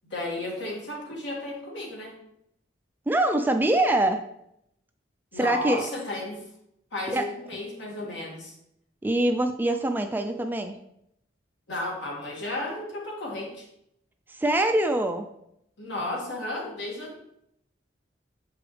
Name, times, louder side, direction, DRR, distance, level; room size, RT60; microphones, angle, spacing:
voice 1, 0.0-2.2 5.3-6.4 6.9-8.5 11.7-13.7 15.8-17.2, left 2 dB, 75° left, -2 dB, 1.8 m, -33 dB
voice 2, 3.1-4.2 5.3-5.9 7.1-7.3 9.0-10.8 14.3-15.3, right 1 dB, 10° right, 6 dB, 0.3 m, -24 dB
7.0 x 4.8 x 3.1 m, 0.76 s
head